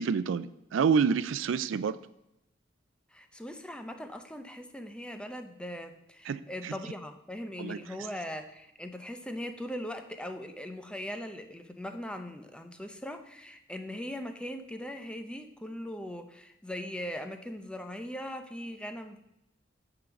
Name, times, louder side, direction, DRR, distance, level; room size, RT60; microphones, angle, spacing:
voice 1, 0.0-2.0 6.3-6.7 7.6-7.8, right 6 dB, 80° right, 16 dB, 0.4 m, -28 dB
voice 2, 3.1-19.2, left 1 dB, 5° left, 7 dB, 0.5 m, -40 dB
8.9 x 3.9 x 6.9 m, 0.86 s
head